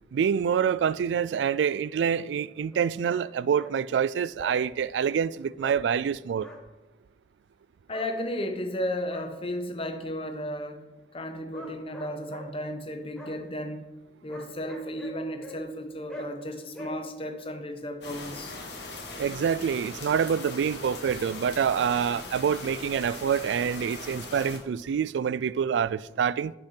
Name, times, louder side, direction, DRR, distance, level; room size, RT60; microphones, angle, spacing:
voice 1, 0.1-6.5 19.2-26.5, right 7 dB, 85° right, 0.3 m, -26 dB
sound 1, 2.7-3.2 3.5-3.7 4.4-4.6 5.6-5.8 6.4-6.6 7.9-8.1 8.8-9.3 11.5-12.5 13.2-13.3 14.3-15.6 16.1-16.3 16.7-16.9, left 1 dB, 5° left, 1.4 m, -43 dB
voice 2, 7.9-10.8 11.1-13.8 14.2-18.5, equal, 30° left, 1.0 m, -34 dB
sound 2, 18.0-24.6, left 3 dB, 70° left, 1.7 m, -40 dB
8.2 x 6.8 x 5.7 m
head